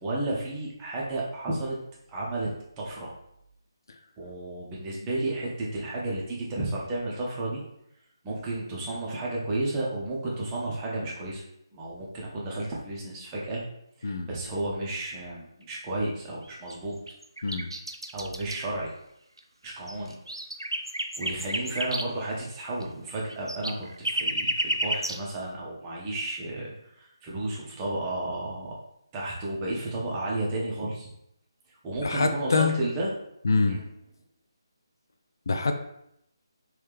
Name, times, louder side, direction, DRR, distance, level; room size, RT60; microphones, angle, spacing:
voice 1, 0.0-1.8 2.1-2.5 2.8-3.1 4.2-7.6 8.2-11.4 11.7-13.6 14.0-17.0 18.1-18.9 19.6-20.2 21.2-28.7 29.1-31.1 31.8-33.1 33.7-33.8, right 2 dB, 15° right, -5 dB, 0.7 m, -32 dB
sound 1, 16.4-16.7 17.1-18.6 19.4-19.5 19.6-22.1 22.8-22.9 23.1-25.2, right 1 dB, 80° right, 0.4 m, -31 dB
voice 2, 32.0-32.7 33.4-33.8 35.5-35.7, left 4 dB, 50° left, 6 dB, 0.4 m, -25 dB
3.1 x 3.1 x 3.4 m, 0.77 s
figure-of-eight pair, 150°, 2 cm